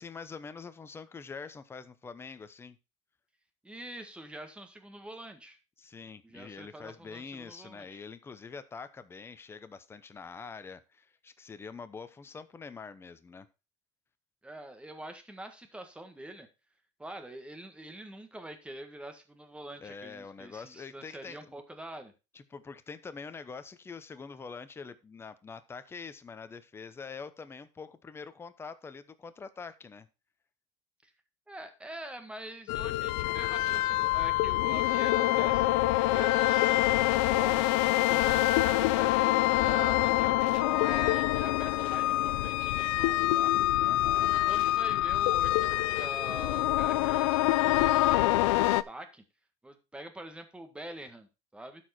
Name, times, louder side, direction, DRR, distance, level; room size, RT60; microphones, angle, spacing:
voice 1, 0.0-2.8 5.8-13.5 19.8-21.6 22.3-30.1 43.8-44.4, left 5 dB, 15° left, 11 dB, 0.7 m, -45 dB
voice 2, 3.6-5.6 6.2-8.0 14.4-16.5 17.0-22.1 31.0-31.1 31.5-43.5 44.3-49.2 49.6-51.8, right 1 dB, 5° right, 7 dB, 1.5 m, -45 dB
sound 1, 32.7-48.8, left 16 dB, 85° left, 0.5 m, -26 dB
12.5 x 4.7 x 4.3 m, 0.28 s
supercardioid pair, 125°, 15 cm